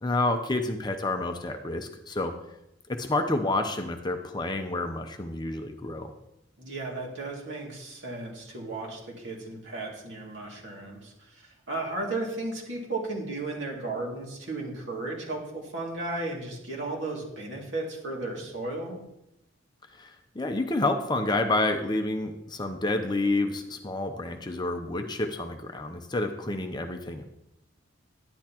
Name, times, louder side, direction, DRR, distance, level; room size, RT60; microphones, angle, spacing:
voice 1, 0.0-2.3 2.9-6.1 20.0-27.2, left 2 dB, 20° left, 5 dB, 0.6 m, -29 dB
voice 2, 6.6-19.0, right 2 dB, 65° right, -2 dB, 2.4 m, -35 dB
10.5 x 10.5 x 2.9 m, 0.84 s
head